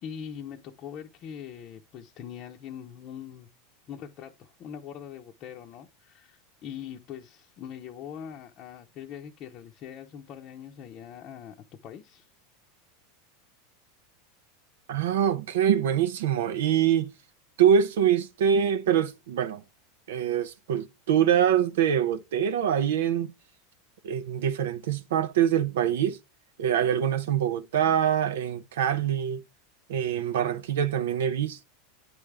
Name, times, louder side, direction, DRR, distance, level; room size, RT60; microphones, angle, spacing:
voice 1, 0.0-3.5 3.9-11.5 11.8-12.3, left 8 dB, 40° left, 0.7 m, -42 dB
voice 2, 14.9-17.1 17.6-19.6 20.1-23.3 24.0-26.2 26.6-29.4 29.9-31.6, right 9 dB, 85° right, 0.6 m, -24 dB
9.1 x 3.3 x 3.5 m
supercardioid pair, 140°, 0 cm